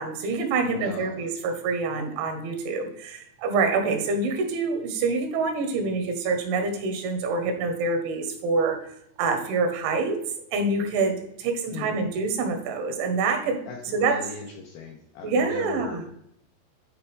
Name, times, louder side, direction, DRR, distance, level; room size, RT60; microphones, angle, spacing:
voice 1, 0.0-8.8 9.2-10.2 10.5-13.6 13.9-14.2 15.2-16.0, right 4 dB, 80° right, 5 dB, 3.4 m, -26 dB
voice 2, 0.6-1.2 11.7-12.0 13.7-16.1, left 5 dB, 80° left, 0 dB, 2.2 m, -38 dB
10.5 x 4.6 x 3.4 m, 0.73 s
omnidirectional pair, 5.4 m